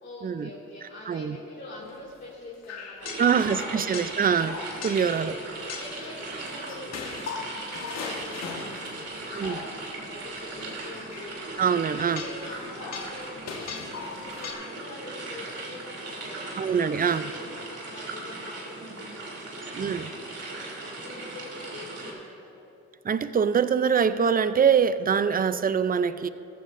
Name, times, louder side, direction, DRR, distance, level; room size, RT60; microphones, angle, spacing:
voice 1, 0.0-4.1 5.1-5.5 5.8-11.4 11.9-13.7 14.1-22.6, left 2 dB, 35° left, -5 dB, 2.4 m, -45 dB
voice 2, 1.1-1.4 3.2-4.6 4.8-5.3 9.3-9.6 11.6-12.2 16.6-17.2 19.7-20.1 23.0-26.3, right 7 dB, 30° right, 13 dB, 0.5 m, -24 dB
sound 1, 1.8-2.1 2.6-5.2 5.7-10.1 10.4-14.5, left 5 dB, 60° left, 1.5 m, -39 dB
sound 2, 3.0-22.1, right 2 dB, 55° right, 3.0 m, -38 dB
14.5 x 14.5 x 2.6 m, 2.9 s
cardioid pair, 90°, 30 cm